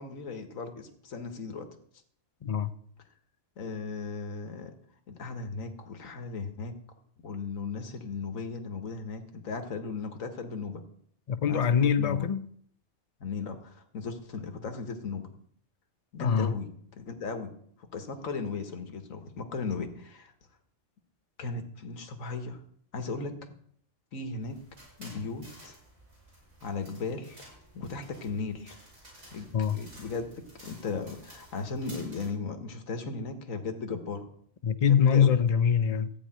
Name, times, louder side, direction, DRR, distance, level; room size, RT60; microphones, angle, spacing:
voice 1, 0.0-1.7 3.6-4.7 5.1-6.7 7.2-10.8 11.5-12.3 13.2-15.3 16.1-17.5 17.9-20.3 21.4-22.6 22.9-23.3 24.1-24.6 25.0-25.7 26.6-27.4 27.7-28.7 29.3-29.5 29.7-34.3 34.9-35.4, left 4 dB, 75° left, 1.8 m, -36 dB
voice 2, 2.4-2.7 11.3-12.5 16.2-16.5 29.5-29.8 34.6-36.1, left 7 dB, 55° left, 0.4 m, -24 dB
sound 1, 24.4-32.3, right 1 dB, 55° right, 5.7 m, -53 dB
14.0 x 5.0 x 8.8 m
omnidirectional pair, 1.4 m